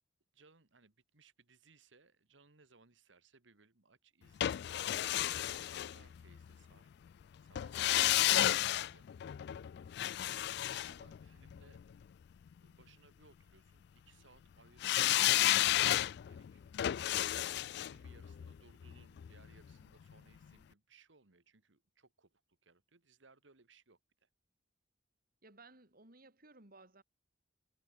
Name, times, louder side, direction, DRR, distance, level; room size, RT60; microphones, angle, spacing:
voice 1, 0.3-4.6 5.2-6.9 7.4-9.1 10.0-11.8 12.6-24.3, right 4 dB, 80° right, 1.9 m, -66 dB
sound 1, 4.4-6.5 7.6-11.8 14.8-19.8 20.1-20.2, left 13 dB, 60° left, 0.3 m, -32 dB
voice 2, 25.4-27.0, right 3 dB, 50° right, 4.0 m, -59 dB
head